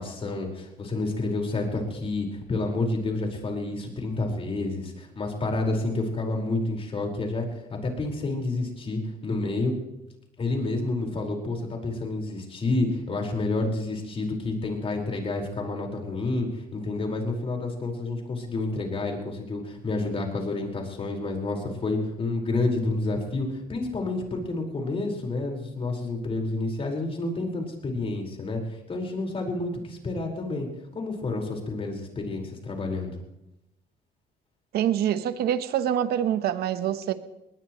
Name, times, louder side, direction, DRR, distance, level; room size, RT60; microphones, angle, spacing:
voice 1, 0.0-7.5 7.8-9.7 10.4-30.7 30.9-33.2, left 2 dB, 35° left, 5.1 m, -29 dB
voice 2, 34.7-37.1, right 10 dB, 70° right, 1.2 m, -25 dB
20.5 x 20.0 x 3.2 m
cardioid pair, 110°, 17 cm